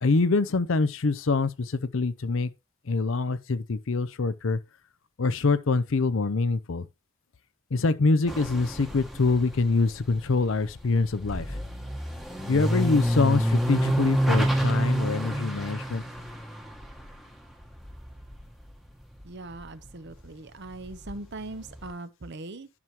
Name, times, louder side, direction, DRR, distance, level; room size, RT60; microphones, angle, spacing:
voice 1, 0.0-2.5 2.9-4.6 5.2-6.9 7.7-11.6 12.5-16.0, left 3 dB, 65° left, 0.6 m, -25 dB
sound 1, 8.3-19.3 19.5-21.9, right 1 dB, ahead, 1.1 m, -29 dB
voice 2, 19.2-22.7, right 2 dB, 55° right, 0.8 m, -40 dB
11.0 x 6.1 x 2.9 m
head